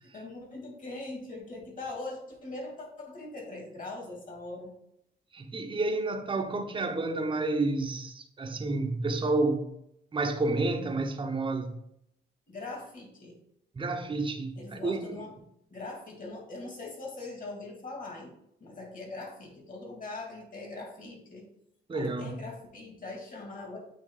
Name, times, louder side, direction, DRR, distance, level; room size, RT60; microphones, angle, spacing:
voice 1, 0.0-4.7 12.5-13.4 14.6-15.4 15.7-21.5 21.9-23.8, left 2 dB, 40° left, 2.4 m, -41 dB
voice 2, 5.3-9.7 10.1-11.8 13.8-15.2 21.9-22.4, right 2 dB, 25° right, 0.8 m, -30 dB
8.5 x 2.9 x 3.9 m
cardioid pair, 90°, 20 cm